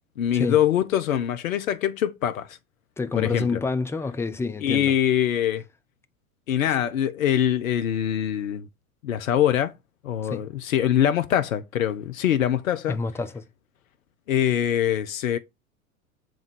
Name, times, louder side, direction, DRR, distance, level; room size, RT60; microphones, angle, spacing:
voice 1, 0.2-2.6 3.1-3.6 4.6-5.6 6.5-8.7 9.0-9.7 10.0-13.0 14.3-15.4, left 10 dB, 70° left, 0.8 m, -23 dB
voice 2, 3.0-4.9 10.2-10.4 12.9-13.4, left 4 dB, 5° left, 0.6 m, -28 dB
7.6 x 3.6 x 5.2 m
figure-of-eight pair, 85°, 43 cm